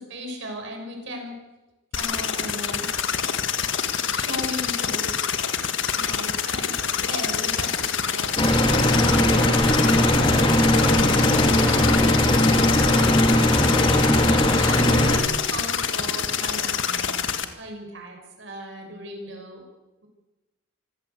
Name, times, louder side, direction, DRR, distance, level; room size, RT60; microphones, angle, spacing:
voice 1, 0.0-1.4 1.9-2.9 4.1-5.1 5.9-13.3 13.7-19.6, equal, 60° right, 2 dB, 6.2 m, -38 dB
sound 1, 1.9-17.4, left 7 dB, 60° left, 1.7 m, -26 dB
sound 2, 8.4-15.2, left 1 dB, 25° left, 2.8 m, -19 dB
25.5 x 15.5 x 8.2 m, 1.1 s
head